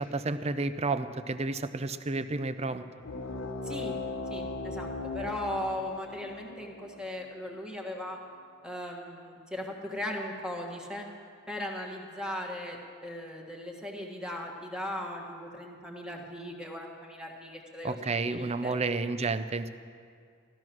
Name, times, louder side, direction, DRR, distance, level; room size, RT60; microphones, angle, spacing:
voice 1, 0.0-2.8 17.8-19.7, right 3 dB, 30° right, 12 dB, 0.5 m, -31 dB
sound 1, 3.0-8.1, left 3 dB, 90° left, 1.1 m, -38 dB
voice 2, 3.6-4.0 4.3-4.9 5.1-8.2 8.6-11.1 11.5-18.7, left 1 dB, 5° right, 0 dB, 1.6 m, -38 dB
15.0 x 12.5 x 6.1 m, 2.2 s
head